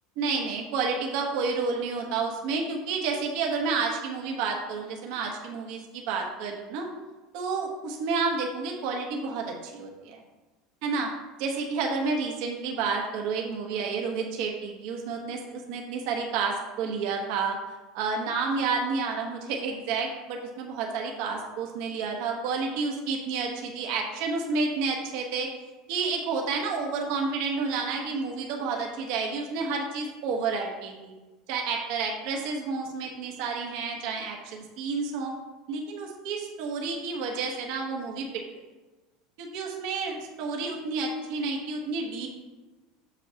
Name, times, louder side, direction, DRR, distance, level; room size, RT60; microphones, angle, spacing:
voice 1, 0.2-6.9 7.3-10.2 10.8-11.1 11.4-25.5 25.9-31.1 31.5-35.3 35.7-38.4 39.4-42.3, right 4 dB, 50° right, 1 dB, 1.1 m, -30 dB
7.1 x 6.9 x 2.8 m, 1.2 s
cardioid pair, 180°, 0 cm